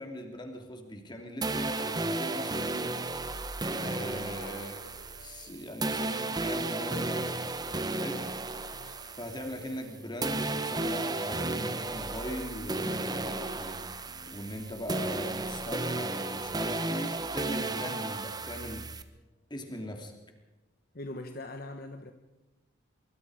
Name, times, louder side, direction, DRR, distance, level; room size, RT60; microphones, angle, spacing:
voice 1, 0.0-4.8 5.2-7.4 8.0-8.2 9.2-18.9 19.5-20.1, equal, 20° left, 3 dB, 3.1 m, -40 dB
sound 1, 1.4-9.9 10.2-19.0, right 2 dB, 20° right, 1.0 m, -34 dB
sound 2, 2.3-19.2, left 1 dB, 85° left, 4.3 m, -55 dB
voice 2, 20.9-22.1, left 2 dB, 50° left, 6 dB, 1.2 m, -41 dB
24.5 x 23.5 x 5.0 m, 1.0 s
head